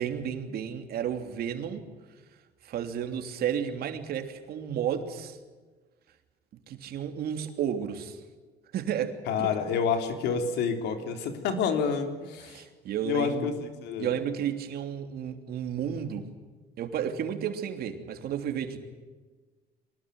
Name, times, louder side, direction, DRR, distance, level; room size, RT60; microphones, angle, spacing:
voice 1, 0.0-1.9 2.6-5.4 6.7-8.2 8.7-9.5 12.4-13.5 14.0-16.3 16.8-18.8, right 9 dB, 65° right, 6 dB, 3.1 m, -32 dB
voice 2, 9.3-12.6 13.0-14.1, left 6 dB, 85° left, 6 dB, 3.6 m, -29 dB
24.0 x 20.0 x 9.4 m, 1.4 s
cardioid pair, 110°, 17 cm